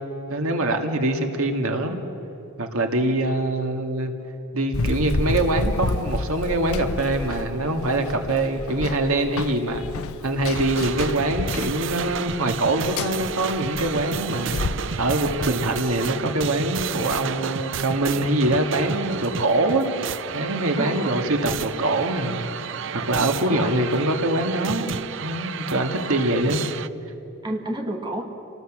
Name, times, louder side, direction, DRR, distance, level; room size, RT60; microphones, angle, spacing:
voice 1, 0.3-2.0 2.6-4.1 4.5-9.8 10.2-19.9 20.3-22.5 22.9-24.9 25.2-26.6, right 1 dB, 80° right, 4 dB, 2.0 m, -24 dB
Run, 4.7-16.1, left 2 dB, 85° left, 0.8 m, -30 dB
sound 1, 10.5-26.9, right 7 dB, 60° right, 0.5 m, -32 dB
voice 2, 20.8-21.2 23.5-23.7 25.7-26.1 27.4-28.2, right 1 dB, 20° right, 2 dB, 1.8 m, -30 dB
29.0 x 18.5 x 7.4 m, 3.0 s
head